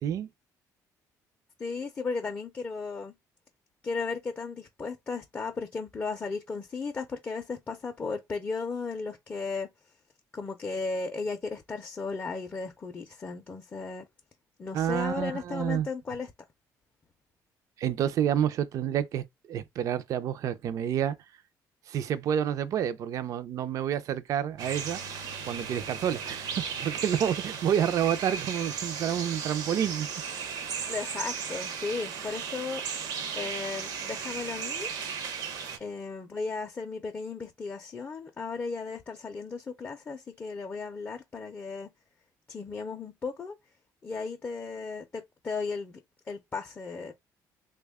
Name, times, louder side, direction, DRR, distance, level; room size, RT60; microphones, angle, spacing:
voice 1, 1.6-3.1 3.8-9.7 10.3-14.1 14.6-16.3 30.9-32.8 33.4-34.9 35.8-41.9 42.5-43.6 44.0-46.0 46.3-47.1, left 4 dB, 25° left, 0.4 m, -35 dB
voice 2, 14.7-15.9 17.8-21.2 21.9-25.0 25.5-26.5 26.8-30.1, right 9 dB, 55° right, 0.4 m, -29 dB
sound 1, 24.6-35.8, right 6 dB, 75° right, 0.7 m, -36 dB
3.3 x 2.2 x 3.4 m
cardioid pair, 135°, 7 cm